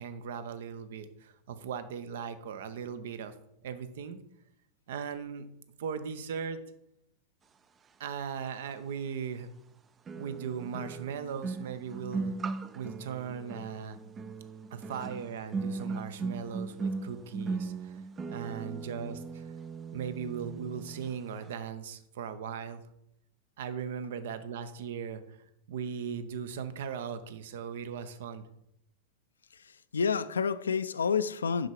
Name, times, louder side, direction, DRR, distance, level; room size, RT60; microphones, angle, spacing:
voice 1, 0.0-3.3 3.6-4.2 4.9-5.5 5.8-6.6 8.0-9.5 10.2-14.0 14.7-18.0 18.3-19.5 19.9-22.8 23.6-25.4 25.7-28.5, right 7 dB, 55° right, 11 dB, 0.7 m, -38 dB
sound 1, 8.7-8.8 10.1-21.2 21.4-21.7, right 4 dB, 20° right, 0.4 m, -38 dB
voice 2, 29.5-31.7, left 6 dB, 70° left, 13 dB, 0.3 m, -29 dB
7.8 x 6.2 x 4.7 m, 0.78 s
figure-of-eight pair, 90°, 0 cm